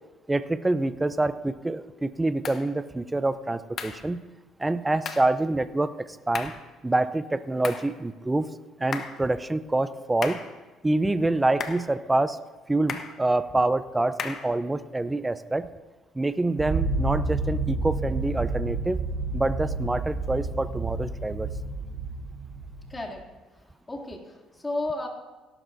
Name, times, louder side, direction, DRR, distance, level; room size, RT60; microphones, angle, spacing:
voice 1, 0.3-4.2 4.6-6.5 6.8-8.5 8.8-10.4 10.8-12.4 12.7-15.7 16.1-19.0 19.3-21.5, right 2 dB, 15° right, 13 dB, 0.6 m, -26 dB
sound 1, 2.4-2.7 3.8-4.0 5.0-5.3 6.3-6.7 7.6-7.9 8.9-9.2 10.2-10.5 11.6-11.9 12.9-13.2 14.2-14.5, left 6 dB, 55° left, 1.2 m, -34 dB
sound 2, 16.6-23.1, right 3 dB, 50° right, 3.4 m, -30 dB
voice 2, 22.9-23.2 23.5-25.1, left 2 dB, 20° left, 0 dB, 2.7 m, -33 dB
17.0 x 12.0 x 2.7 m, 1.2 s
supercardioid pair, 75°, 0 cm